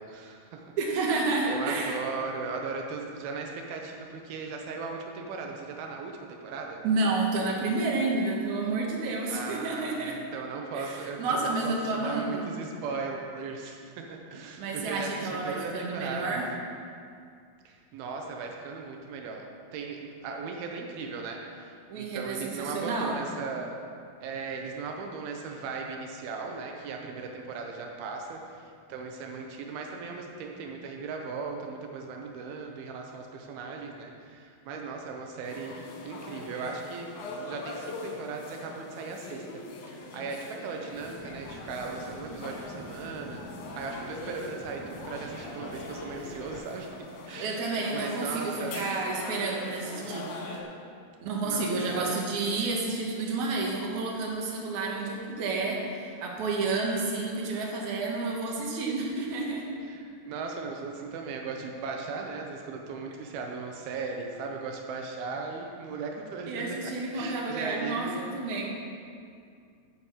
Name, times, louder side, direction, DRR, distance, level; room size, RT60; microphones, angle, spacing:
voice 1, 0.0-0.7 1.2-6.8 9.3-16.4 17.7-23.8 24.2-37.1 37.4-43.4 43.7-49.0 51.4-52.2 57.5-57.6 59.8-68.3, right 4 dB, 85° right, 1 dB, 2.8 m, -38 dB
voice 2, 0.8-2.0 6.8-10.2 10.7-12.5 14.6-16.5 21.9-23.2 47.4-50.3 51.2-59.7 66.5-68.7, right 3 dB, 60° right, -2 dB, 2.6 m, -30 dB
sound 1, 35.4-50.6, left 2 dB, 65° left, 2.3 m, -42 dB
sound 2, 40.9-46.5, equal, 15° right, 1.2 m, -45 dB
10.0 x 6.4 x 7.1 m, 2.3 s
omnidirectional pair, 4.3 m